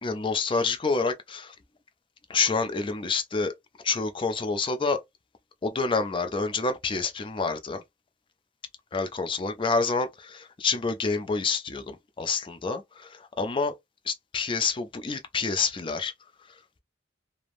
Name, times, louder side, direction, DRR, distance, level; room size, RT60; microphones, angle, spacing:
voice 1, 0.0-1.5 2.3-3.5 3.8-5.0 5.6-7.8 8.9-13.7 14.1-16.1, left 4 dB, 30° left, 0.4 m, -28 dB
3.2 x 2.0 x 2.5 m
head